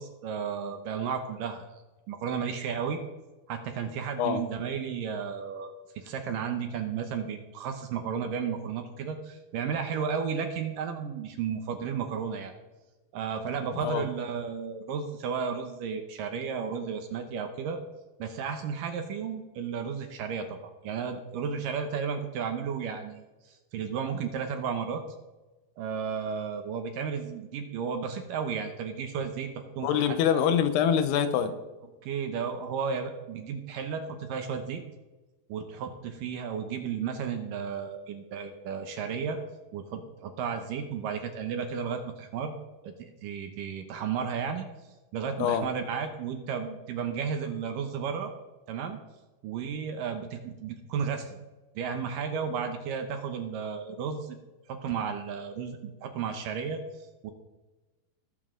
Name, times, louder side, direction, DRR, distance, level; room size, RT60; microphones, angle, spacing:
voice 1, 0.0-1.7 2.1-3.0 3.5-12.5 13.1-17.8 18.2-23.2 23.7-25.0 25.8-30.4 32.0-34.8 35.5-39.4 39.7-42.5 42.8-44.7 45.1-48.3 48.7-49.0 49.4-51.4 51.8-54.4 54.7-56.8 57.2-57.3, right 6 dB, 70° right, 6 dB, 2.3 m, -33 dB
voice 2, 29.8-31.5 45.4-45.7, left 8 dB, 90° left, 10 dB, 3.0 m, -25 dB
20.5 x 7.2 x 3.8 m, 1.1 s
omnidirectional pair, 4.6 m